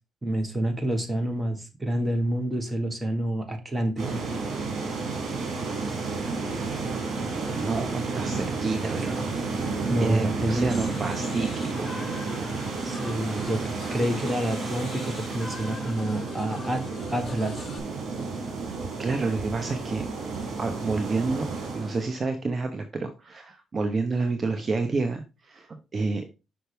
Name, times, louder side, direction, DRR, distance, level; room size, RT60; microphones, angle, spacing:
voice 1, 0.2-4.2 9.9-10.7 12.8-16.8 17.1-17.7, right 1 dB, 20° right, 6 dB, 1.5 m, -28 dB
sound 1, 4.0-22.2, right 4 dB, 60° right, 2.7 m, -31 dB
voice 2, 7.6-9.3 9.6-9.7 10.0-11.9 19.0-20.1 20.6-26.2, right 3 dB, 40° right, 5 dB, 0.9 m, -29 dB
sound 2, 10.7-17.8, left 4 dB, 40° left, 1.0 m, -42 dB
5.7 x 5.7 x 3.4 m, 0.27 s
cardioid pair, 90°, 0 cm